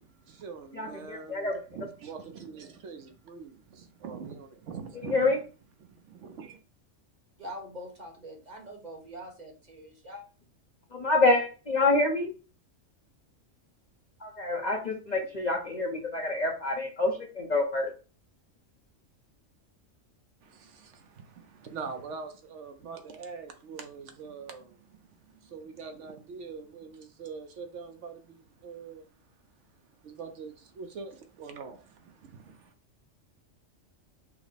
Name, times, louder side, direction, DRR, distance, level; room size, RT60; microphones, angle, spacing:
voice 1, 0.0-5.4 5.8-6.6 20.4-29.1 29.7-32.7, right 5 dB, 70° right, 0.9 m, -44 dB
voice 2, 0.7-1.6 5.0-5.4 10.9-12.3 14.2-17.9, left 2 dB, 45° left, 0.7 m, -27 dB
voice 3, 7.4-10.2, equal, 35° right, 1.1 m, -43 dB
5.8 x 2.0 x 4.0 m
omnidirectional pair, 1.3 m